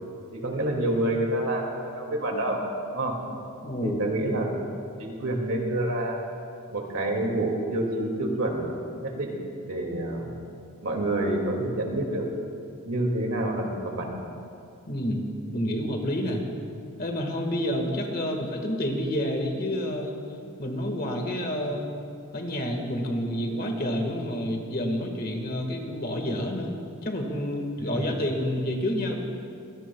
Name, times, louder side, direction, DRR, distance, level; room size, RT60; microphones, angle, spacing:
voice 1, 0.3-2.6 2.9-3.2 3.8-4.7 5.0-6.2 6.7-8.6 9.0-9.3 9.6-10.3 10.8-12.2 12.8-14.2 27.9-28.0, right 1 dB, 75° right, 0 dB, 2.3 m, -28 dB
voice 2, 3.6-4.0 14.9-15.2 15.5-16.4 17.0-20.1 20.6-21.9 22.3-26.7 27.0-29.1, equal, 40° left, 2 dB, 1.7 m, -29 dB
24.5 x 16.5 x 2.3 m, 2.5 s
head